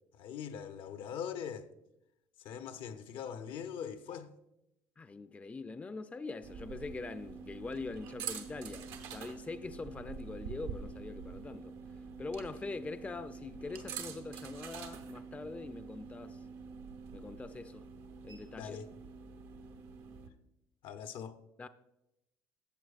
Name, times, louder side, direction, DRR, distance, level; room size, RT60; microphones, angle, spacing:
voice 1, 0.1-1.7 2.4-4.3 18.6-18.9 20.8-21.4, left 8 dB, 70° left, 0.7 m, -42 dB
voice 2, 5.0-11.8 12.2-16.4 17.1-17.9 18.2-18.8 21.6-21.7, left 3 dB, 15° left, 0.4 m, -43 dB
sound 1, 6.4-20.3, right 6 dB, 85° right, 0.9 m, -46 dB
13.5 x 7.7 x 2.4 m
supercardioid pair, 95°, 9 cm